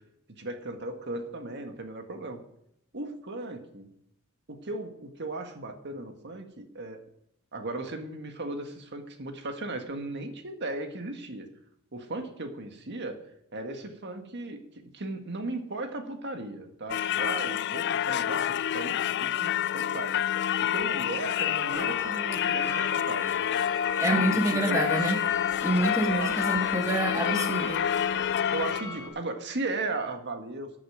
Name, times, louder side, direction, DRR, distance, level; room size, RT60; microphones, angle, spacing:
voice 1, 0.4-2.4 2.9-3.9 4.5-7.0 7.5-11.5 11.9-13.2 13.5-20.2 20.6-23.7 24.3-24.8 26.0-26.7 28.5-30.7, right 2 dB, 55° right, 5 dB, 1.7 m, -36 dB
Singing / Church bell, 16.9-28.8, left 10 dB, 50° left, 0.3 m, -28 dB
sound 1, 21.7-29.1, left 1 dB, 10° left, 4.4 m, -41 dB
voice 2, 24.0-25.2 25.6-27.8, right 1 dB, 15° right, 4 dB, 1.2 m, -27 dB
13.5 x 9.0 x 5.0 m, 0.76 s
head